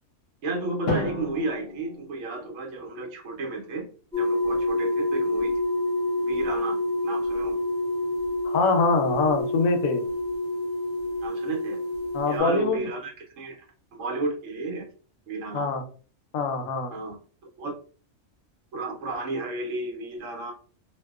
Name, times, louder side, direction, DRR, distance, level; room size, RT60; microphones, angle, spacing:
voice 1, 0.4-3.9 4.2-5.5 6.1-6.8 7.0-7.6 11.2-11.8 12.3-13.6 13.9-14.9 15.3-15.7 16.9-17.2 17.6-17.8 18.7-20.5, right 2 dB, 70° right, 0 dB, 1.2 m, -32 dB
Drum, 0.9-3.0, left 1 dB, 55° left, 0.8 m, -32 dB
sound 1, 4.1-12.4, left 1 dB, 35° right, 1.1 m, -27 dB
voice 2, 8.4-10.0 12.1-12.9 15.5-15.8 16.3-16.9, left 4 dB, 80° left, 6 dB, 1.0 m, -24 dB
2.8 x 2.0 x 2.3 m, 0.40 s
omnidirectional pair, 1.4 m